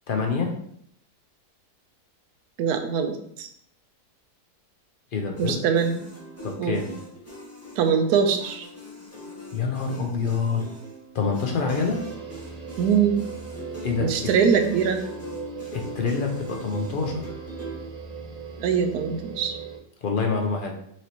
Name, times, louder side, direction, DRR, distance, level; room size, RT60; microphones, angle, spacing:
voice 1, 0.1-0.5 5.1-5.6 6.4-6.9 9.5-10.6 11.1-12.0 13.8-14.3 15.7-17.3 20.0-20.7, left 5 dB, 55° left, 2 dB, 0.5 m, -26 dB
voice 2, 2.6-3.5 5.4-6.0 6.6-6.8 7.8-8.7 12.8-13.2 14.0-15.0 18.6-19.6, right 7 dB, 75° right, 6 dB, 1.1 m, -22 dB
sound 1, 5.3-17.8, equal, 15° left, 0.6 m, -42 dB
sound 2, 11.6-19.8, right 7 dB, 60° right, 1.4 m, -38 dB
6.0 x 3.0 x 2.9 m, 0.69 s
omnidirectional pair, 1.7 m